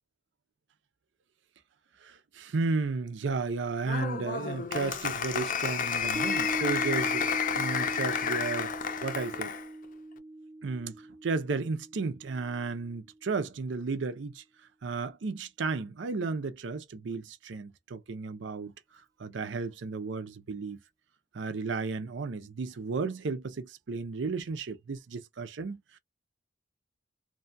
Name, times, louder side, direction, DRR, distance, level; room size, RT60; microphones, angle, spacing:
voice 1, 2.0-7.3 7.6-8.7 9.0-9.5 10.6-14.4 14.8-18.7 19.2-20.8 21.3-25.8, right 4 dB, 70° right, 0.5 m, -33 dB
Applause, 3.8-9.6, left 7 dB, 45° left, 0.5 m, -31 dB
Piano, 6.2-12.9, right 2 dB, 20° right, 0.3 m, -39 dB
2.7 x 2.3 x 2.5 m
head